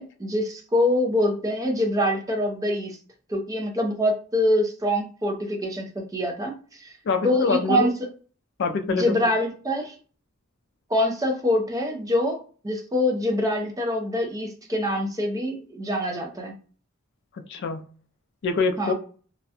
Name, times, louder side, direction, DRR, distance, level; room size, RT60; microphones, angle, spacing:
voice 1, 0.0-3.0 3.3-6.9 7.2-7.9 8.9-9.9 10.9-12.4 12.6-16.5 18.8-18.9, left 1 dB, 15° right, 3 dB, 0.5 m, -25 dB
voice 2, 7.0-7.9 8.6-9.3 17.3-17.8 18.4-18.9, left 4 dB, 60° left, 7 dB, 0.3 m, -25 dB
2.3 x 2.1 x 2.7 m, 0.39 s
head